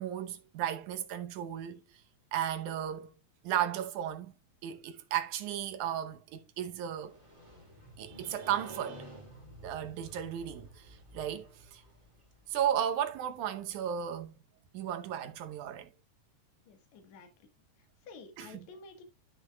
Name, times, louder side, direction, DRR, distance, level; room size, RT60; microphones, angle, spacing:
voice 1, 0.0-1.8 2.3-3.1 3.4-4.3 4.6-7.2 8.0-9.1 9.6-11.8 12.5-14.4 14.7-15.9 18.4-18.7, right 10 dB, 80° right, 2.4 m, -35 dB
Motorcycle, 6.9-12.8, right 1 dB, 10° right, 2.7 m, -51 dB
voice 2, 16.7-17.5 17.8-19.0, left 4 dB, 70° left, 2.8 m, -52 dB
12.5 x 6.4 x 2.3 m
omnidirectional pair, 3.4 m